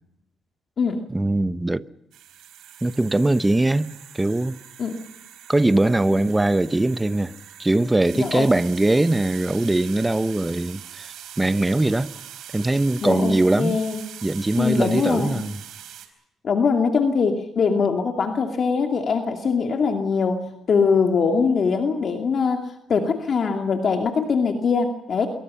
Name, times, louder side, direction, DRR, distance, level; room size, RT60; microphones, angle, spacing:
voice 1, 1.1-1.8 2.8-4.6 5.5-7.3 7.6-11.1 11.4-12.1 12.5-13.8 14.2-15.6, right 2 dB, 15° right, 0.9 m, -21 dB
sound 1, 2.1-16.1, right 10 dB, 80° right, 4.3 m, -42 dB
voice 2, 8.2-8.5 13.0-14.0 14.6-15.4 16.4-25.3, left 5 dB, 50° left, 2.4 m, -22 dB
27.0 x 23.0 x 5.7 m
cardioid pair, 90°, 0 cm